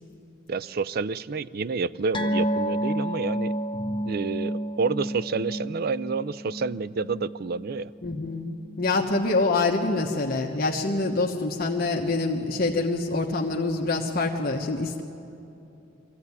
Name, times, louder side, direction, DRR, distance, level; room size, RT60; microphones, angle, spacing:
voice 1, 0.5-3.5 4.1-7.9, right 4 dB, 50° right, 18 dB, 0.4 m, -29 dB
sound 1, 2.1-9.0 9.2-9.5 9.8-9.9, equal, 25° left, 1.0 m, -31 dB
voice 2, 8.0-15.0, left 3 dB, 50° left, 0 dB, 1.1 m, -26 dB
23.0 x 15.0 x 9.7 m, 2.9 s
head